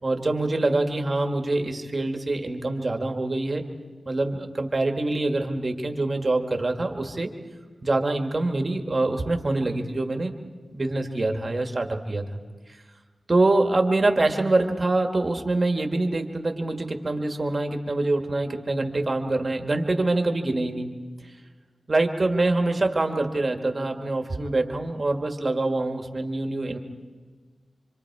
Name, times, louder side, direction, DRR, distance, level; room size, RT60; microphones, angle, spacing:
voice 1, 0.0-3.6 4.1-7.3 7.8-10.3 10.7-12.2 13.3-20.9 21.9-26.8, right 2 dB, 35° right, 4 dB, 1.8 m, -25 dB
26.0 x 26.0 x 4.8 m, 1.5 s
wide cardioid pair, 100°, 0 cm